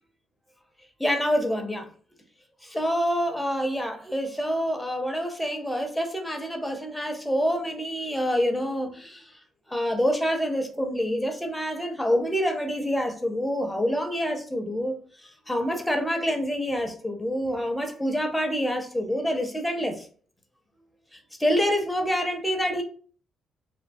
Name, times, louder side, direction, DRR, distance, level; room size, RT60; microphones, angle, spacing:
voice 1, 1.0-1.9 2.6-9.2 9.7-15.0 15.2-20.1 21.4-22.8, equal, 5° left, 0.6 m, -27 dB
2.7 x 2.2 x 2.5 m
cardioid pair, 90°, 0 cm